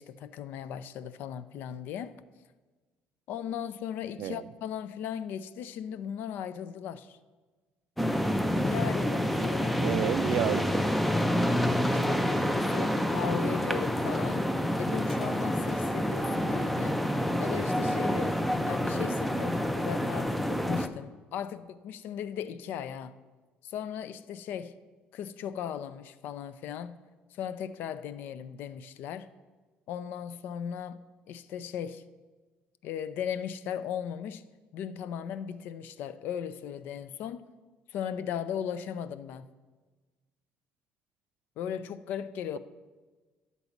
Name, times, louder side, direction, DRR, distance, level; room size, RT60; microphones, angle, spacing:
voice 1, 0.0-2.1 3.3-7.2 8.6-9.8 11.9-14.5 14.8-17.0 17.4-18.4 18.7-23.1 23.6-24.7 25.1-27.0 27.3-29.3 29.9-31.0 31.3-32.0 32.8-34.4 34.7-37.5 37.9-39.5 41.6-42.6, left 9 dB, 65° left, 0.4 m, -37 dB
sound 1, 8.0-20.9, equal, ahead, 0.4 m, -28 dB
voice 2, 9.8-10.7, right 13 dB, 65° right, 0.3 m, -30 dB
11.0 x 4.1 x 7.1 m
cardioid pair, 150°, 4 cm